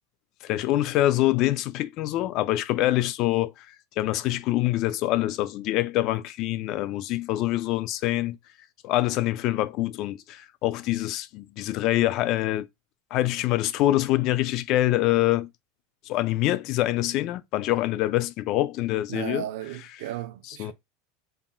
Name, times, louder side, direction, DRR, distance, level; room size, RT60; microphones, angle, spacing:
voice 1, 0.4-8.4 8.8-12.7 13.1-15.5 16.1-19.4 20.5-20.7, left 15 dB, 45° left, 0.3 m, -25 dB
voice 2, 19.1-20.7, right 13 dB, 70° right, 0.5 m, -35 dB
5.5 x 2.4 x 2.2 m
supercardioid pair, 155°, 0 cm